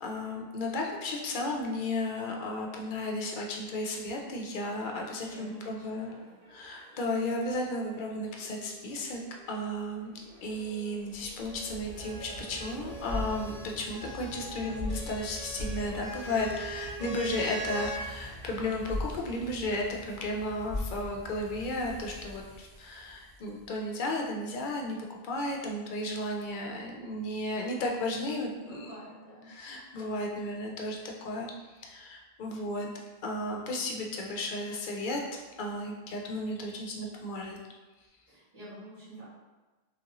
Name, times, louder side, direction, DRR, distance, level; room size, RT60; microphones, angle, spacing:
voice 1, 0.0-6.1 6.5-9.2 9.5-10.1 10.4-25.0 25.2-28.9 29.5-32.9 33.2-35.2 35.6-37.6, left 1 dB, 60° left, 0 dB, 0.6 m, -34 dB
sound 1, 4.5-16.4, equal, 85° right, 1.1 m, -55 dB
voice 2, 5.3-6.2 28.6-29.5 38.3-39.2, right 1 dB, 35° right, -12 dB, 1.3 m, -47 dB
sound 2, 10.3-23.7, left 2 dB, 65° right, 1.6 m, -41 dB
sound 3, 11.4-18.1 19.2-19.8, right 2 dB, 20° right, 0.7 m, -42 dB
3.2 x 2.5 x 2.9 m, 1.2 s
omnidirectional pair, 1.1 m